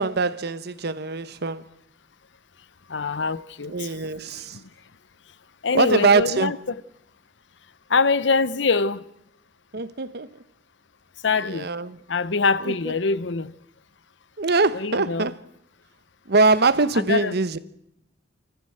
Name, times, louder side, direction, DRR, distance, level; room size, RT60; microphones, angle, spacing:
voice 1, 0.0-1.6 3.6-4.6 5.7-6.6 9.7-10.4 11.4-12.0 12.6-12.9 14.4-15.4 16.3-17.6, right 3 dB, 60° right, 1.1 m, -23 dB
voice 2, 2.9-3.7 4.5-4.6 5.6-6.8 7.9-9.1 11.2-11.7 12.1-13.5 14.8-15.3 17.0-17.4, left 4 dB, 75° left, 0.8 m, -24 dB
28.0 x 14.5 x 7.9 m
head